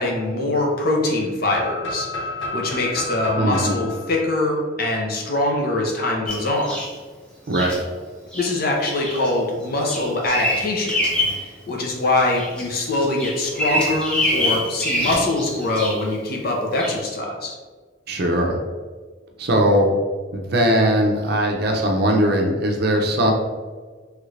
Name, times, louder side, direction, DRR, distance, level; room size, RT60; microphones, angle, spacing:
voice 1, 0.0-2.1 2.5-6.8 8.3-11.0 11.3-17.6, left 2 dB, 50° left, 0 dB, 0.7 m, -23 dB
sound 1, 1.5-5.3, left 1 dB, 85° left, 0.9 m, -31 dB
voice 2, 3.4-3.8 7.5-7.8 18.1-18.6 19.4-19.9 20.3-23.3, right 1 dB, 55° right, 1 dB, 0.5 m, -19 dB
Bird vocalization bird call bird song, 6.3-6.9 7.5-7.8 8.3-8.5 9.0-9.3 9.6-11.4 11.8-12.6 12.9-16.1 16.8-17.0, left 1 dB, 5° left, 0.8 m, -25 dB
3.2 x 2.5 x 3.2 m, 1.4 s
head